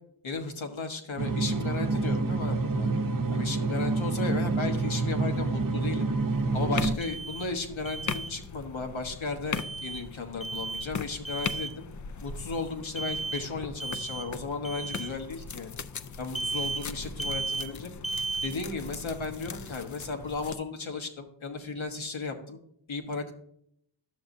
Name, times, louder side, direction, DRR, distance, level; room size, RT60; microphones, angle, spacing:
voice 1, 0.2-2.9 3.3-6.1 6.5-11.9 12.2-15.7 16.2-17.9 18.4-22.6 22.9-23.3, left 3 dB, 75° left, 5 dB, 1.2 m, -35 dB
sound 1, 1.2-6.9, right 3 dB, 45° right, 0.7 m, -28 dB
sound 2, 6.3-20.6, left 5 dB, 40° left, 0.4 m, -40 dB
Alarm, 7.0-7.5 7.9-8.3 9.6-10.0 10.4-10.9 11.2-11.7 13.0-13.5 13.8-14.3 14.6-15.1 16.4-16.8 17.2-17.7 18.0-18.5, right 3 dB, ahead, 0.6 m, -34 dB
11.5 x 7.0 x 2.6 m, 0.71 s
wide cardioid pair, 65°, 48 cm